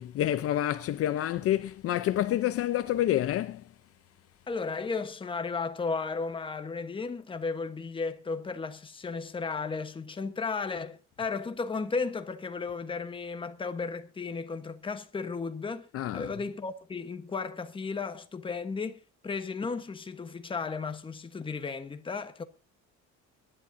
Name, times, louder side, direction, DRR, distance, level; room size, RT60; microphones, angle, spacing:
voice 1, 0.0-3.6 15.9-16.3, left 12 dB, 50° left, 0.7 m, -28 dB
voice 2, 4.5-15.9 16.1-22.4, left 4 dB, 15° left, 1.1 m, -34 dB
23.5 x 11.0 x 2.7 m
cardioid pair, 165°, 31 cm